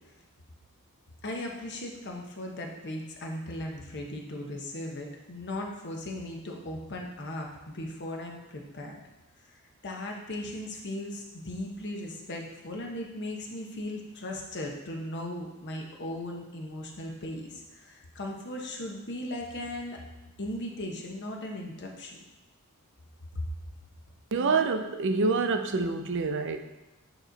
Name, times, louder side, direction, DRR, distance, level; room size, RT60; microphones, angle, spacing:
voice 1, 1.2-9.0 9.8-20.0 20.4-22.2 23.3-23.5, left 1 dB, 50° left, 1 dB, 0.9 m, -37 dB
voice 2, 24.3-26.6, right 4 dB, 55° right, 7 dB, 0.5 m, -26 dB
8.8 x 3.1 x 3.9 m, 1.1 s
head